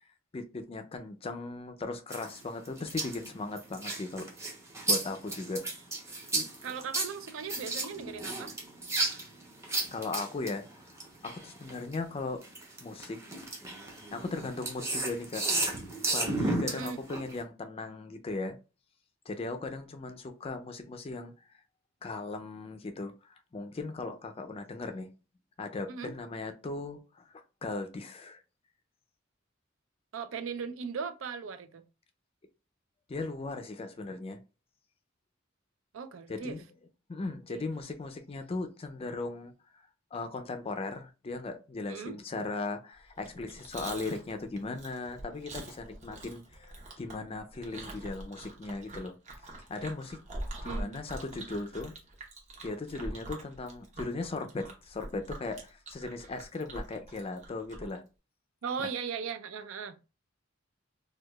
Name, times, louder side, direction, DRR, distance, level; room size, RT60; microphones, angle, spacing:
voice 1, 0.3-4.3 4.9-5.6 6.3-6.5 9.9-10.6 11.2-12.4 12.8-13.2 14.1-15.5 16.1-18.6 19.3-21.3 22.0-23.1 23.5-25.1 25.6-27.2 27.6-28.4 33.1-34.4 36.3-36.6 37.1-39.5 40.1-49.1 49.7-50.2 50.6-51.9 52.6-58.0 58.8-58.9, left 3 dB, 30° left, 0.4 m, -37 dB
sound 1, 2.1-11.9 12.4-17.4, right 2 dB, 15° right, 0.7 m, -33 dB
voice 2, 6.6-8.5 16.7-17.0 25.9-26.1 30.1-31.8 35.9-36.6 37.5-37.6 41.9-42.2 50.6-51.0 58.6-60.0, right 6 dB, 80° right, 0.4 m, -38 dB
Chewing mastication, 43.2-58.0, right 1 dB, 40° right, 0.9 m, -44 dB
4.6 x 2.3 x 2.2 m
head